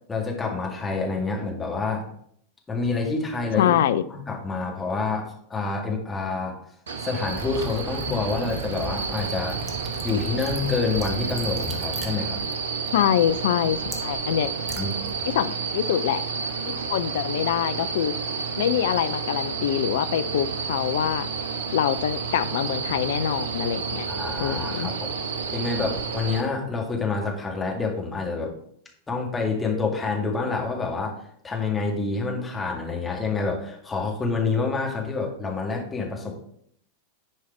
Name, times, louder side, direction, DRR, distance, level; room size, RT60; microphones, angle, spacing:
voice 1, 0.1-2.0 2.7-3.8 4.1-6.6 7.0-9.6 10.0-12.4 14.8-15.3 24.1-25.1 25.5-28.5 29.1-31.2 31.4-36.4, left 4 dB, 15° left, 2.1 m, -27 dB
voice 2, 3.6-4.0 12.9-14.5 15.3-16.2 16.7-18.2 18.6-21.3 21.7-24.1 24.4-24.9, left 10 dB, 55° left, 0.4 m, -24 dB
sound 1, 6.9-26.4, right 5 dB, 65° right, 0.9 m, -30 dB
Liquid, 7.2-15.5, right 3 dB, 20° right, 1.4 m, -39 dB
10.5 x 4.8 x 4.5 m
figure-of-eight pair, 90°, 0 cm